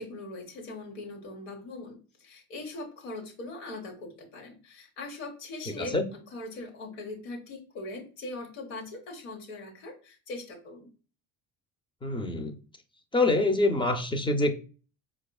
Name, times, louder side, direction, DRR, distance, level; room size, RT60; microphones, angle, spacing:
voice 1, 0.0-10.9, left 2 dB, 85° left, 1.2 m, -41 dB
voice 2, 12.0-12.6 13.1-14.6, left 2 dB, 15° left, 0.5 m, -25 dB
4.6 x 2.3 x 2.2 m
hypercardioid pair, 70°, 39 cm